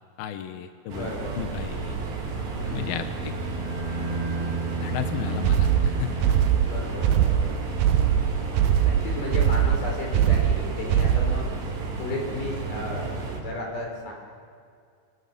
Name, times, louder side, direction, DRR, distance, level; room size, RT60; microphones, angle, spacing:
voice 1, 0.2-1.1 1.4-2.0 2.5-3.3 4.8-6.4, left 10 dB, 75° left, 8 dB, 2.2 m, -34 dB
voice 2, 0.9-1.4 2.5-3.0 6.7-7.5 8.1-8.2 8.8-11.5 12.0-14.1, left 2 dB, 40° left, 0 dB, 6.1 m, -34 dB
sound 1, 0.9-13.4, right 4 dB, 60° right, 5.5 m, -33 dB
Bowed string instrument, 2.5-7.3, right 3 dB, 20° left, 6.0 m, -33 dB
sound 2, 5.4-11.5, right 9 dB, 90° right, 2.2 m, -21 dB
28.5 x 24.0 x 7.1 m, 2.3 s
omnidirectional pair, 5.7 m